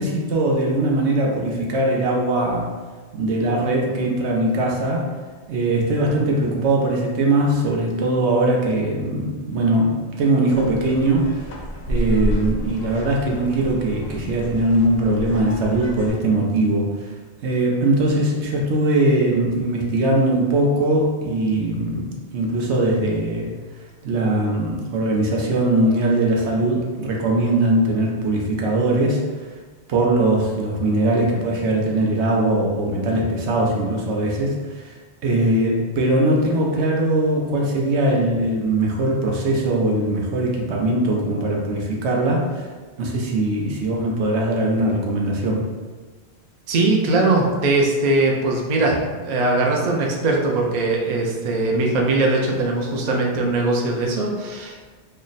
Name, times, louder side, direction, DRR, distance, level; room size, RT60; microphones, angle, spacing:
voice 1, 0.0-2.6 3.1-5.0 5.5-11.3 11.9-17.1 17.4-23.5 24.0-29.5 29.9-35.0 35.2-42.7 43.0-45.6, right 1 dB, 80° right, -1 dB, 1.0 m, -21 dB
sound 1, 10.5-16.1, equal, 65° left, 0.8 m, -30 dB
voice 2, 46.7-54.9, right 2 dB, 50° right, 0 dB, 0.5 m, -20 dB
3.2 x 2.1 x 3.9 m, 1.4 s
omnidirectional pair, 1.1 m